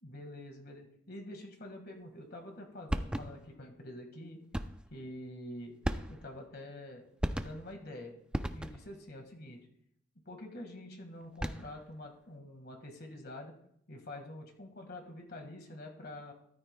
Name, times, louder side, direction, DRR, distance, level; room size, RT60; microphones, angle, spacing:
voice 1, 0.0-4.4 4.9-5.7 6.1-7.1 7.4-8.2 8.5-9.6 10.2-13.5 13.9-16.3, left 1 dB, 55° left, 3 dB, 1.8 m, -46 dB
sound 1, 2.9-3.5 4.5-4.9 5.8-6.4 7.2-7.8 8.3-9.0 11.2-11.8, equal, 5° right, 0.4 m, -36 dB
14.0 x 12.5 x 2.3 m, 0.68 s
head